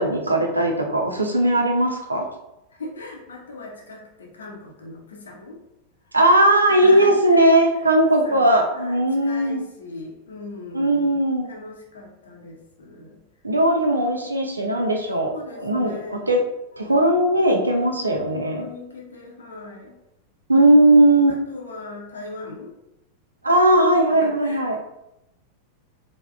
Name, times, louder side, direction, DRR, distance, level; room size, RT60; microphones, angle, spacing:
voice 1, 0.0-2.3 6.1-9.6 10.7-11.5 13.4-16.4 16.8-18.7 20.5-21.4 23.4-24.8, right 1 dB, 80° right, 3 dB, 0.4 m, -18 dB
voice 2, 2.7-5.6 6.8-7.4 8.0-11.2 11.5-13.2 13.9-14.0 15.2-16.3 16.8-17.3 18.2-19.9 21.3-22.7 24.2-24.8, left 2 dB, 70° left, 0 dB, 0.6 m, -39 dB
3.3 x 2.0 x 2.3 m, 0.88 s
figure-of-eight pair, 90°, 0 cm